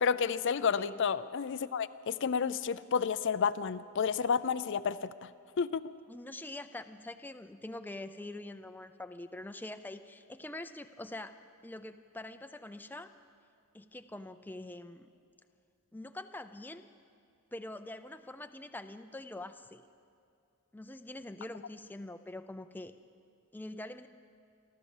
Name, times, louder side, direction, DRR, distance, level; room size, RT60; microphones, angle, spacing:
voice 1, 0.0-5.3 5.6-5.9, left 6 dB, 55° left, 13 dB, 0.5 m, -31 dB
voice 2, 6.1-11.4 11.6-13.1 13.7-15.1 15.9-16.9 17.5-19.8 20.7-22.9 23.5-24.1, left 1 dB, 10° left, 9 dB, 0.5 m, -44 dB
29.5 x 12.5 x 7.2 m, 2.4 s
head